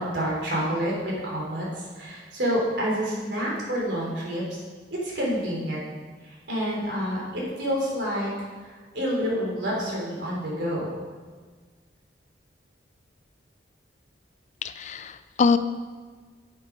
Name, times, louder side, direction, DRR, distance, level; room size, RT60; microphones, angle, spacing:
voice 1, 0.0-4.6 4.9-5.8 6.2-11.0, equal, 75° right, -3 dB, 3.5 m, -28 dB
voice 2, 14.6-15.6, left 5 dB, 40° left, 12 dB, 0.4 m, -23 dB
9.3 x 8.4 x 4.7 m, 1.5 s
head